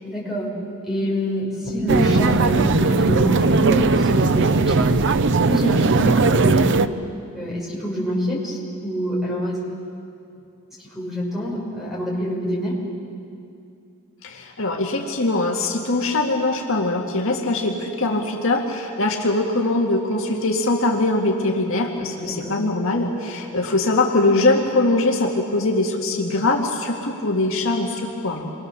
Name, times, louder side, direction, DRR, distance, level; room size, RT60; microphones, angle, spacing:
voice 1, 0.0-0.5 0.9-4.9 5.3-6.8 7.3-9.6 10.8-12.8 22.2-22.6, equal, ahead, -4 dB, 6.0 m, -26 dB
sound 1, 1.9-6.9, right 3 dB, 55° right, 0.7 m, -18 dB
voice 2, 14.2-28.5, left 2 dB, 60° left, 0 dB, 2.0 m, -22 dB
28.0 x 23.0 x 6.9 m, 2.6 s
head